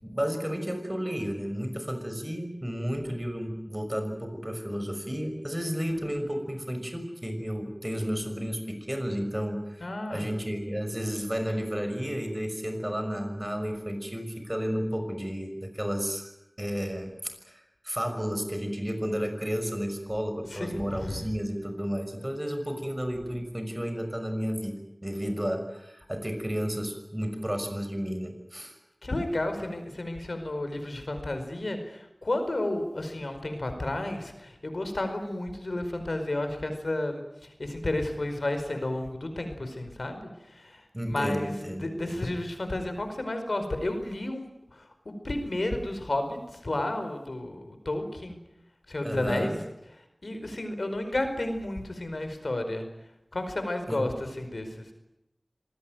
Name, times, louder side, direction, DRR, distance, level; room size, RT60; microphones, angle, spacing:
voice 1, 0.0-16.3 16.6-17.1 17.5-28.8 40.9-42.2 49.0-49.6 53.9-54.0, equal, 20° right, 7 dB, 6.1 m, -32 dB
voice 2, 9.8-10.3 20.5-21.2 29.0-48.4 48.9-49.5 50.2-52.9 53.3-54.9, left 1 dB, 80° left, 7 dB, 4.9 m, -32 dB
26.0 x 18.5 x 9.2 m, 0.86 s
wide cardioid pair, 45°, 0 cm